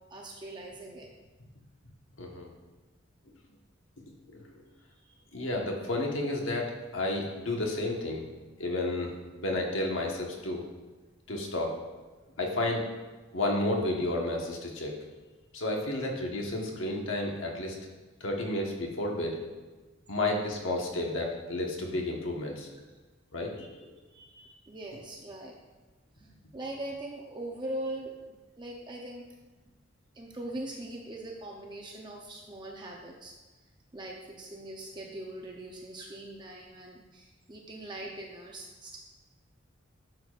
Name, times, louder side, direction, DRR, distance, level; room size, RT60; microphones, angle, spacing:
voice 1, 0.1-1.1 5.1-5.2 24.1-25.6 26.2-29.3 30.1-33.5 33.9-39.0, right 1 dB, 25° right, -1 dB, 0.7 m, -41 dB
voice 2, 2.2-2.5 4.3-4.4 5.3-8.2 8.6-10.6 11.3-11.7 12.4-12.8 13.3-14.9 15.5-17.8 18.2-19.4 20.1-22.7 23.3-23.9, left 1 dB, 85° left, 0 dB, 1.3 m, -31 dB
10.5 x 6.9 x 2.5 m, 1.3 s
head